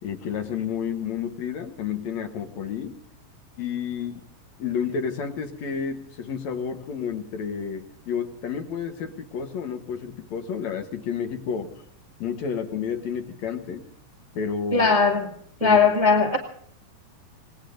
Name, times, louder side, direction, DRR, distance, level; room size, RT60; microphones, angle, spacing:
voice 1, 0.0-3.0 3.6-4.2 4.6-11.7 12.2-13.8 14.4-14.9 15.6-15.8, left 7 dB, 65° left, 7 dB, 2.1 m, -30 dB
voice 2, 14.7-15.3 15.6-16.4, left 5 dB, 30° right, 0 dB, 0.6 m, -19 dB
27.5 x 19.0 x 2.6 m, 0.63 s
omnidirectional pair, 4.1 m